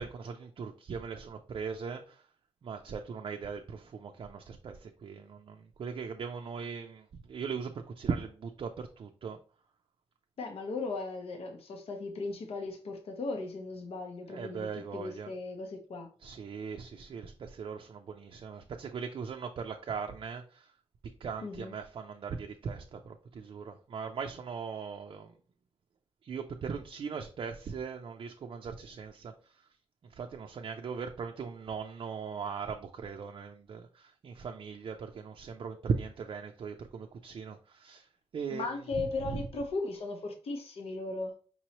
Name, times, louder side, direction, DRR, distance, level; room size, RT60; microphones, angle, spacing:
voice 1, 0.0-2.2 2.6-9.4 14.3-15.3 16.2-20.7 21.2-25.3 26.2-29.3 30.0-38.1 38.3-38.7 39.2-39.4, right 6 dB, 55° right, 3 dB, 0.4 m, -39 dB
voice 2, 10.4-16.1 21.4-21.7 38.5-41.3, left 3 dB, 70° left, 3 dB, 0.8 m, -37 dB
5.4 x 3.0 x 2.9 m, 0.39 s
wide cardioid pair, 130°, 10 cm